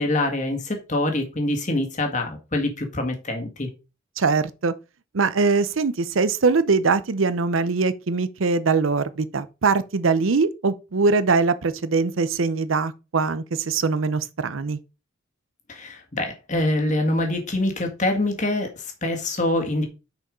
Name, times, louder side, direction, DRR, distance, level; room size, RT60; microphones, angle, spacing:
voice 1, 0.0-3.7 15.7-19.9, left 1 dB, 35° left, 1.7 m, -25 dB
voice 2, 4.2-4.7 5.1-14.8, right 4 dB, 75° right, 0.7 m, -22 dB
6.3 x 5.4 x 5.1 m
head